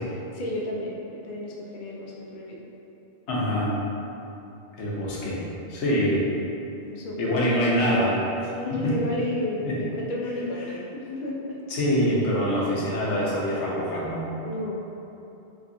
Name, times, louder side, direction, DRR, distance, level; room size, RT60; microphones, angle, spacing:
voice 1, 0.3-2.6 6.9-7.2 8.6-11.6 14.4-14.8, left 1 dB, 55° left, -4 dB, 0.5 m, -32 dB
voice 2, 3.3-3.7 4.8-6.2 7.2-8.2 8.4-9.0 9.6-9.8 10.6-10.8 11.7-14.3, equal, 75° left, -6 dB, 1.0 m, -25 dB
3.4 x 3.1 x 2.6 m, 2.9 s
omnidirectional pair, 1.2 m